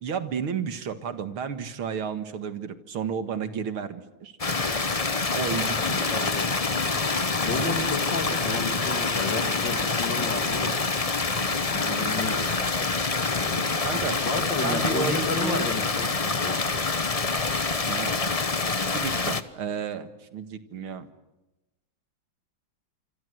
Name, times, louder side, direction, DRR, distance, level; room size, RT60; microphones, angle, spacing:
voice 1, 0.0-4.3 5.3-6.1 13.8-14.2 14.6-15.7 17.9-18.3 18.9-21.1, right 6 dB, 85° right, 10 dB, 2.6 m, -32 dB
sound 1, 4.4-19.4, left 4 dB, 30° left, 0.7 m, -26 dB
voice 2, 6.1-6.6 7.4-10.7 11.7-12.4 13.3-16.6, left 3 dB, 60° left, 7 dB, 3.2 m, -32 dB
27.0 x 25.5 x 8.0 m, 1.0 s
omnidirectional pair, 2.3 m